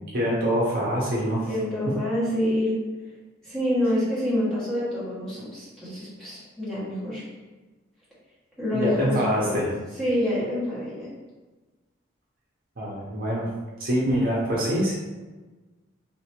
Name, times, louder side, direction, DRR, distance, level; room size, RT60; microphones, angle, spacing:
voice 1, 0.0-1.5 8.7-9.7 12.8-13.5 13.8-14.9, equal, 45° right, -5 dB, 0.7 m, -25 dB
voice 2, 1.5-2.8 3.4-7.2 8.6-9.6 10.0-11.1, left 1 dB, 5° left, -11 dB, 1.1 m, -27 dB
3.2 x 2.7 x 2.9 m, 1.2 s
head